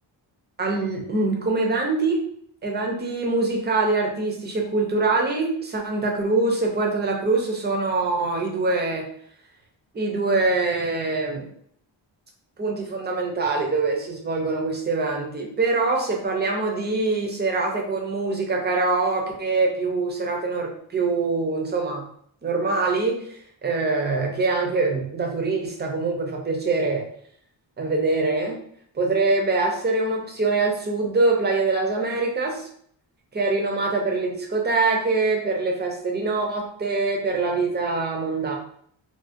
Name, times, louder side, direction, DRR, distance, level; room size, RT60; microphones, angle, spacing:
voice 1, 0.6-2.2 2.6-9.0 9.9-11.5 12.6-22.1 22.4-27.0 27.8-28.6 28.9-32.7 33.3-38.6, right 3 dB, 25° right, 1 dB, 0.4 m, -24 dB
2.4 x 2.1 x 2.4 m, 0.64 s
wide cardioid pair, 155°, 47 cm